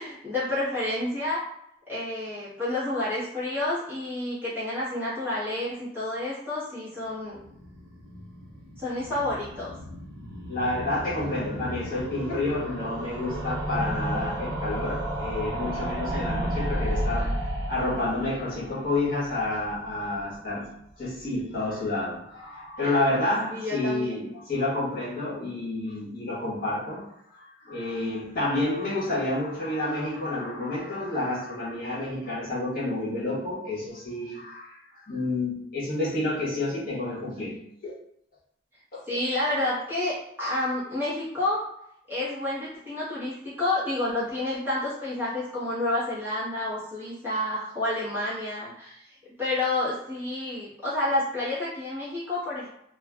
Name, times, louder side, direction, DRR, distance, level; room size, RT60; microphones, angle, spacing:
voice 1, 0.0-1.4 1.9-7.4 8.8-9.7 22.8-23.0 23.5-24.2 39.1-41.6 42.1-49.1 49.4-52.7, left 2 dB, 10° right, -10 dB, 1.1 m, -29 dB
sound 1, 7.3-20.3 20.6-20.7 20.9-21.0 21.2-21.3, right 1 dB, 75° right, 0.7 m, -33 dB
voice 2, 10.5-17.4 17.7-37.9 38.9-39.0, left 2 dB, 50° left, -8 dB, 1.2 m, -29 dB
3.1 x 2.4 x 2.3 m, 0.75 s
head